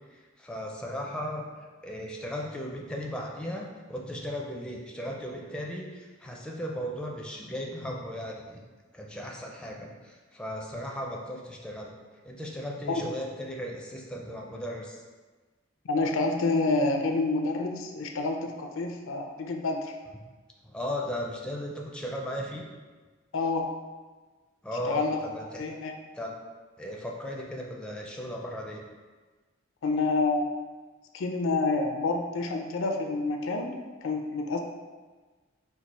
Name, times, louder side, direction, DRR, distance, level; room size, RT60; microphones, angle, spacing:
voice 1, 0.1-1.5 1.8-8.6 8.9-11.9 12.2-15.0 20.6-22.7 24.6-25.6 26.1-26.3 26.8-28.8, equal, 5° left, -1 dB, 0.4 m, -36 dB
voice 2, 15.8-19.9 23.3-23.7 24.8-25.2 25.6-25.9 29.8-30.5 31.1-33.7 34.0-34.6, left 3 dB, 70° left, 3 dB, 0.4 m, -28 dB
4.5 x 2.3 x 4.1 m, 1.3 s
head